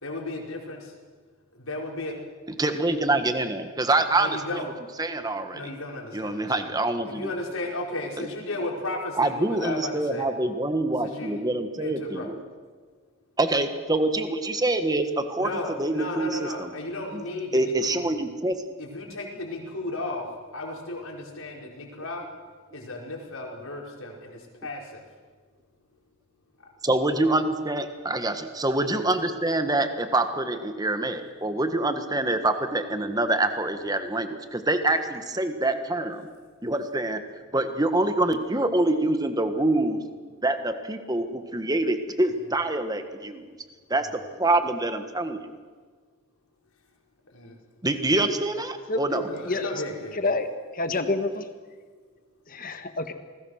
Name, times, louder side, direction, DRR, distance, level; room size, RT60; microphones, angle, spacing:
voice 1, 0.0-0.9 1.5-2.2 4.1-4.7 5.5-6.7 7.1-10.3 11.0-11.4 11.8-12.3 15.4-18.1 18.8-20.3 20.5-22.3 22.7-25.0 42.4-42.5 47.3-47.6 49.1-50.2, left 2 dB, 75° left, 0 dB, 5.0 m, -34 dB
voice 2, 2.6-4.6 5.0-5.6 6.1-7.3 9.2-12.4 13.4-15.5 15.8-16.7 17.1-17.2 17.5-18.6 26.8-36.3 36.6-37.2 37.5-40.0 40.4-43.5 43.9-44.1 44.4-45.5 47.8-49.2, right 2 dB, 20° right, 8 dB, 1.5 m, -25 dB
voice 3, 50.2-50.5 50.7-51.5 52.5-53.1, left 2 dB, 40° left, 7 dB, 1.7 m, -27 dB
28.0 x 20.5 x 6.5 m, 1.5 s
head